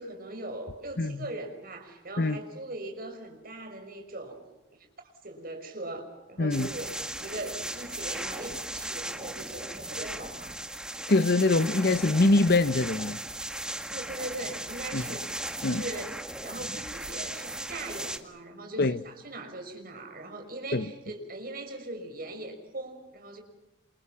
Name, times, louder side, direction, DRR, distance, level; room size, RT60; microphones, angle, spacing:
voice 1, 0.0-4.4 4.8-4.9 5.2-10.5 13.9-23.4, right 2 dB, 50° right, 6.0 m, -40 dB
sound 1, 6.5-18.2, right 1 dB, 5° right, 1.8 m, -37 dB
voice 2, 11.1-13.2 14.9-15.0 15.6-15.8 18.8-19.0 20.7-20.9, left 2 dB, 55° left, 1.0 m, -23 dB
28.5 x 28.0 x 5.8 m
head